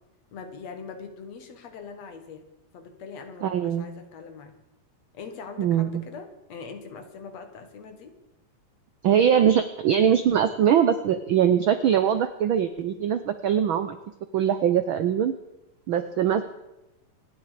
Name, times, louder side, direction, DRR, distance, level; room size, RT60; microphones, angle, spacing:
voice 1, 0.3-2.5 2.7-4.5 5.1-8.2, left 5 dB, 65° left, 7 dB, 2.8 m, -42 dB
voice 2, 3.4-3.9 5.6-6.0 9.0-14.0 14.3-15.3 15.9-16.4, right 9 dB, 85° right, 11 dB, 1.1 m, -22 dB
26.5 x 11.0 x 5.0 m, 0.95 s
omnidirectional pair, 3.3 m